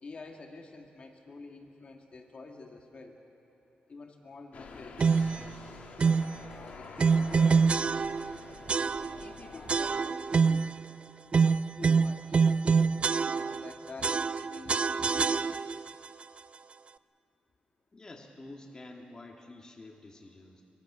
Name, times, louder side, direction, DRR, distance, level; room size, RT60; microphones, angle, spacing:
voice 1, 0.0-3.2 3.9-5.7 6.4-7.9 9.0-10.7 11.7-12.4 13.3-15.6, left 3 dB, 40° left, 2 dB, 2.2 m, -48 dB
sound 1, 4.5-10.0, left 4 dB, 60° left, 2.2 m, -47 dB
sound 2, 5.0-5.4 6.0-6.4 7.0-8.4 8.7-9.3 9.7-10.8 11.3-13.7 14.0-15.9, right 5 dB, 40° right, 0.4 m, -26 dB
voice 2, 17.9-20.6, left 2 dB, 25° left, 1 dB, 2.1 m, -48 dB
25.0 x 23.5 x 6.3 m, 2.9 s
cardioid pair, 115°, 3 cm